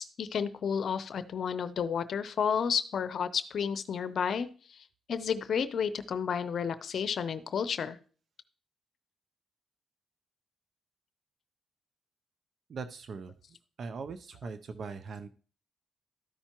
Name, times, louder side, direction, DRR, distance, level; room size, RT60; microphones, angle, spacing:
voice 1, 0.0-8.0, left 7 dB, 65° left, 13 dB, 0.6 m, -32 dB
voice 2, 12.7-13.4 13.8-15.3, right 5 dB, 60° right, 11 dB, 0.5 m, -40 dB
13.0 x 5.6 x 3.0 m, 0.41 s
cardioid pair, 80°, 0 cm